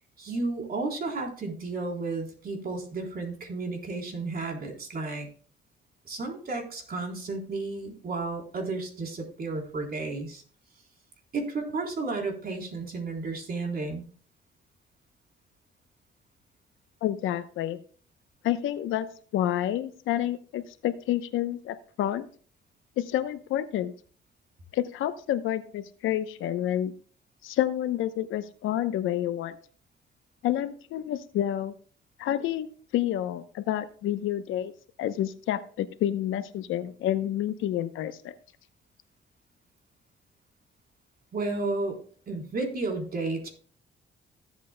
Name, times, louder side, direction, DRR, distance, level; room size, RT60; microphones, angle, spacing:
voice 1, 0.2-5.3 6.1-10.4 11.3-14.0 41.3-42.0 42.3-43.5, right 3 dB, 50° right, 1 dB, 3.6 m, -32 dB
voice 2, 17.0-17.8 18.4-19.1 19.3-22.3 23.0-23.9 24.7-26.9 27.4-29.6 30.4-31.7 32.2-32.7 32.9-34.7 35.0-38.3, left 12 dB, 85° left, 11 dB, 0.8 m, -29 dB
15.5 x 8.2 x 2.2 m, 0.43 s
cardioid pair, 90°, 20 cm